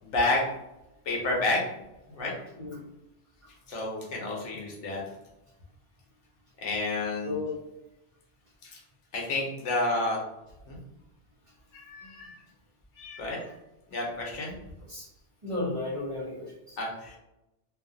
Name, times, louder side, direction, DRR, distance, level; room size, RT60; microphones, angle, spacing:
voice 1, 0.0-0.5 1.0-1.6 2.1-2.3 3.7-5.0 6.6-7.4 8.6-8.8 9.1-10.2 10.7-10.8 11.7-12.4 13.0-13.5 13.9-14.5 16.8-17.2, left 2 dB, 80° left, -2 dB, 1.1 m, -30 dB
voice 2, 7.2-7.6 14.9-15.1 15.4-16.8, left 2 dB, 30° right, -7 dB, 0.7 m, -34 dB
2.5 x 2.4 x 2.5 m, 0.92 s
omnidirectional pair, 1.2 m